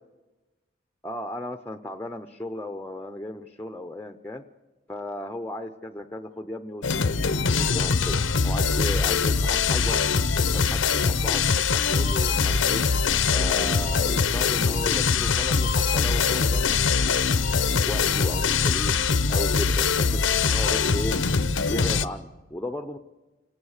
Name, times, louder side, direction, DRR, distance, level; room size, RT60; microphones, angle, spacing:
voice 1, 1.0-4.4 4.9-6.8 7.1-7.4 7.7-10.2 10.5-12.8 13.3-19.0 19.3-21.2 21.7-23.0, left 1 dB, 10° left, 7 dB, 0.6 m, -35 dB
sound 1, 6.8-22.1, left 5 dB, 90° left, 0.8 m, -23 dB
28.5 x 18.0 x 6.5 m, 1.2 s
head